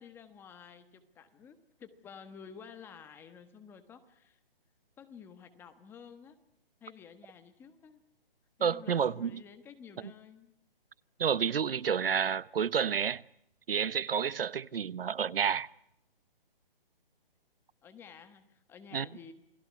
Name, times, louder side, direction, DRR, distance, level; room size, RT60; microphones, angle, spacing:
voice 1, 0.0-4.4 5.0-6.4 6.8-8.0 8.6-10.5 17.8-19.3, left 7 dB, 10° left, 1.3 m, -52 dB
voice 2, 8.6-9.4 11.2-13.2 13.7-15.7 18.9-19.1, right 7 dB, 75° right, 1.0 m, -30 dB
29.0 x 20.5 x 9.5 m
hypercardioid pair, 160°, 29 cm